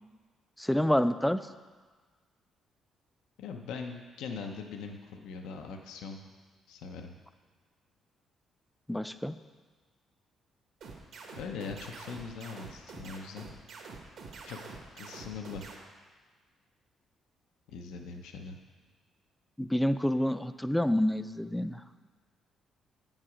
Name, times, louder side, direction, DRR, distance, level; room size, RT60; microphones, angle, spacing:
voice 1, 0.6-1.4 8.9-9.4 19.6-21.8, left 1 dB, 5° left, 12 dB, 0.3 m, -28 dB
voice 2, 3.4-6.2 6.7-7.2 11.4-13.4 14.5-14.6 14.9-15.7 17.7-18.6, left 5 dB, 90° left, 4 dB, 0.7 m, -41 dB
sound 1, 10.8-15.8, right 4 dB, 70° right, 1.3 m, -46 dB
7.4 x 7.1 x 4.9 m, 1.4 s
cardioid pair, 90°, 0 cm